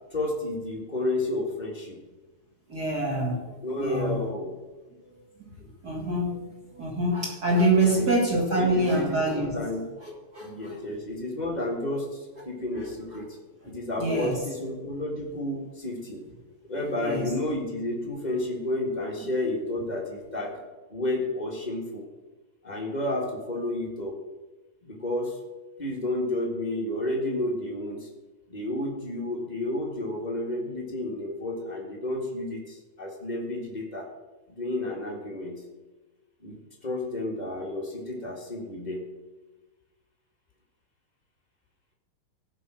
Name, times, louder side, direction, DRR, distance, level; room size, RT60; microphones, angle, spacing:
voice 1, 0.1-2.0 3.6-4.5 7.8-8.1 8.5-9.2 9.5-9.9 10.4-13.4 13.6-16.3 16.7-20.6 20.9-22.0 22.6-24.1 24.8-25.4 25.8-28.1 28.5-34.1 34.5-35.6 36.4-39.1, left 1 dB, 40° left, -2 dB, 0.5 m, -31 dB
voice 2, 2.7-4.2 5.4-5.5 5.8-6.4 6.8-9.5 10.0-10.8 12.4-12.5 12.8-13.2 13.6-13.7 14.0-14.4 17.0-17.3, right 1 dB, 35° right, -2 dB, 1.8 m, -26 dB
15.5 x 5.6 x 6.1 m, 1.2 s
omnidirectional pair, 3.9 m